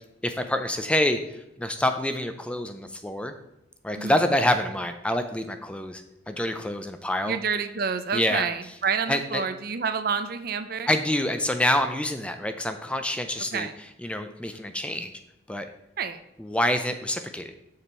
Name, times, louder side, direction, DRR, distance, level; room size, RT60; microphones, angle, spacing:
voice 1, 0.2-1.2 1.6-3.3 3.8-7.4 8.1-8.5 9.1-9.4 10.9-13.7 14.0-15.1 15.5-15.7 16.4-17.5, left 1 dB, 5° left, 8 dB, 0.4 m, -26 dB
voice 2, 7.3-10.9 13.5-13.7 16.0-16.2, right 6 dB, 50° right, 11 dB, 0.5 m, -28 dB
7.1 x 6.7 x 4.4 m, 0.86 s
head